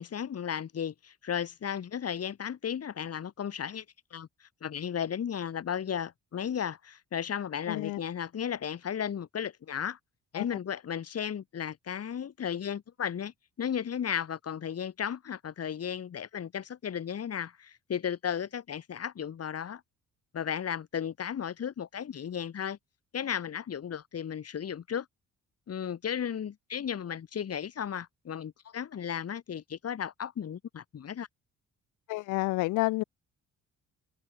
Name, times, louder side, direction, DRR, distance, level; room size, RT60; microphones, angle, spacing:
voice 1, 0.0-3.8 4.1-4.3 4.6-10.0 10.3-19.8 20.3-22.8 23.1-25.1 25.7-31.3, left 8 dB, 55° left, 3.7 m, -35 dB
voice 2, 7.7-8.0 10.4-10.5 32.1-33.0, left 20 dB, 90° left, 0.5 m, -29 dB
open air
cardioid pair, 90°, 30 cm